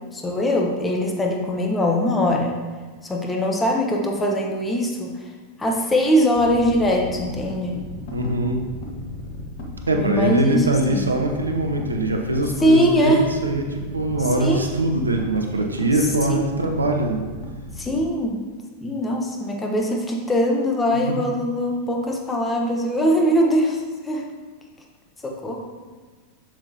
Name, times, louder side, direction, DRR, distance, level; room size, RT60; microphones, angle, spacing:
voice 1, 0.1-2.6 3.0-5.1 5.6-7.8 9.9-11.0 12.6-13.2 14.4-14.7 16.3-16.4 17.8-18.4 18.8-24.2 25.2-25.6, equal, 15° left, 0 dB, 1.1 m, -21 dB
sound 1, 6.3-18.1, left 2 dB, 50° left, 1.4 m, -36 dB
voice 2, 8.1-8.6 9.9-17.2 21.1-21.2, right 1 dB, 80° right, 3 dB, 0.8 m, -22 dB
7.3 x 7.0 x 2.8 m, 1.4 s
figure-of-eight pair, 90°, 0 cm